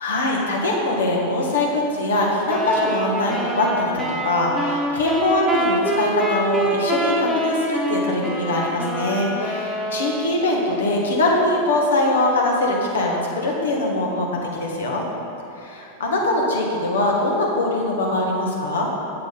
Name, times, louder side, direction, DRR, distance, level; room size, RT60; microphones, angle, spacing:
voice 1, 0.0-14.3 14.5-15.0 15.6-18.9, left 2 dB, 65° left, -2 dB, 1.8 m, -22 dB
sound 1, 2.5-10.5, right 1 dB, 5° right, 1.4 m, -25 dB
8.3 x 7.6 x 5.5 m, 2.7 s
figure-of-eight pair, 90°, 0 cm